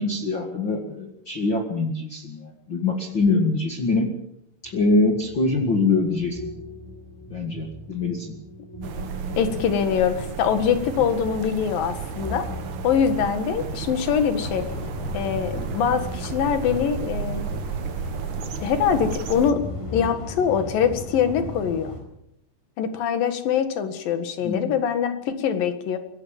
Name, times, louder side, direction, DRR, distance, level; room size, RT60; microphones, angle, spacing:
voice 1, 0.0-4.1 4.6-6.5 7.3-8.3 24.4-24.7, left 3 dB, 40° left, 2 dB, 2.3 m, -24 dB
sound 1, 4.6-21.8, left 1 dB, 5° left, 3.8 m, -40 dB
sound 2, 8.8-19.5, right 6 dB, 60° right, 2.7 m, -33 dB
voice 2, 9.4-12.5 12.8-14.7 15.1-17.4 18.6-19.6 19.9-21.9 22.8-26.0, left 7 dB, 80° left, 9 dB, 3.4 m, -23 dB
sound 3, 14.4-22.0, left 2 dB, 60° left, 6.4 m, -37 dB
22.0 x 18.0 x 7.3 m, 0.76 s
omnidirectional pair, 4.0 m